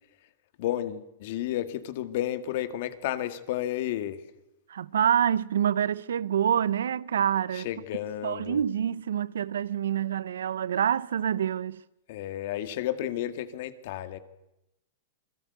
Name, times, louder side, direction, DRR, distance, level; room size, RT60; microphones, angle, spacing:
voice 1, 0.6-4.2 7.5-8.6 12.1-14.2, left 12 dB, 60° left, 2.0 m, -32 dB
voice 2, 4.7-7.7 8.2-11.8, right 9 dB, 90° right, 0.8 m, -26 dB
27.0 x 21.5 x 8.2 m
hypercardioid pair, 130°, 0 cm